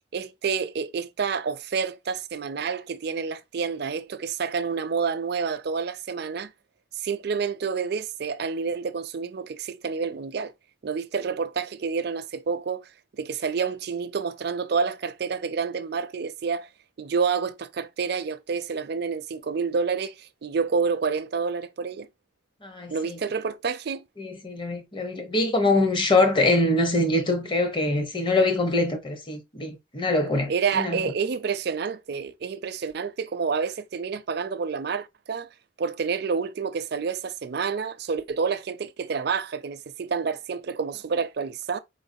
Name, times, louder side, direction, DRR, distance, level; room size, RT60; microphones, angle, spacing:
voice 1, 0.1-6.5 6.9-10.5 10.8-12.9 13.2-16.7 17.0-22.1 22.9-24.0 30.5-35.5 35.8-41.8, right 5 dB, 60° right, 0.4 m, -28 dB
voice 2, 22.6-23.2 24.2-31.1, left 2 dB, 25° left, 0.8 m, -24 dB
4.4 x 3.1 x 2.6 m
head